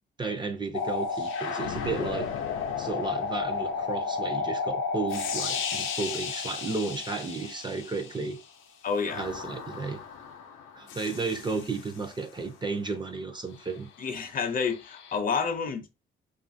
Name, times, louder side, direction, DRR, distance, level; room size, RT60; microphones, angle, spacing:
voice 1, 0.2-2.3 2.8-8.4 9.1-10.0 10.7-13.9, right 4 dB, 25° right, 0.5 m, -33 dB
sound 1, 0.7-8.3 9.1-12.1 14.7-15.2, left 5 dB, 85° left, 0.5 m, -33 dB
voice 2, 8.8-9.3 14.0-15.9, left 5 dB, 45° left, 0.6 m, -29 dB
2.7 x 2.4 x 2.5 m
cardioid pair, 90°, 20 cm